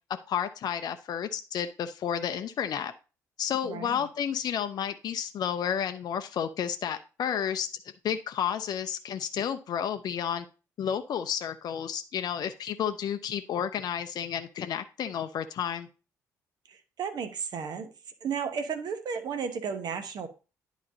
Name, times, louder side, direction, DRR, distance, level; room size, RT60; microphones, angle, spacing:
voice 1, 0.3-2.9 3.4-7.7 8.0-10.5 10.8-15.9, left 8 dB, 50° left, 9 dB, 0.5 m, -31 dB
voice 2, 3.6-4.0 16.7-17.9 18.2-20.3, right 6 dB, 50° right, 8 dB, 1.1 m, -34 dB
10.5 x 4.1 x 2.7 m, 0.32 s
figure-of-eight pair, 45°, 9 cm